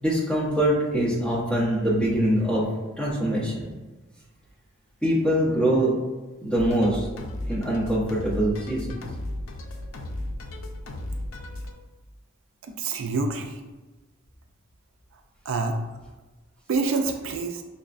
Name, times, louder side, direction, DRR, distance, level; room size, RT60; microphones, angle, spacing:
voice 1, 0.0-2.7 3.0-3.7 5.0-5.9 6.4-7.1 7.5-8.9, right 1 dB, 5° left, -8 dB, 0.9 m, -23 dB
sound 1, 6.6-11.7, left 1 dB, 75° left, 0.5 m, -35 dB
voice 2, 12.7-13.6 15.5-15.8 16.7-17.6, right 3 dB, 70° right, 4 dB, 0.3 m, -27 dB
5.4 x 2.1 x 2.5 m, 1.2 s
head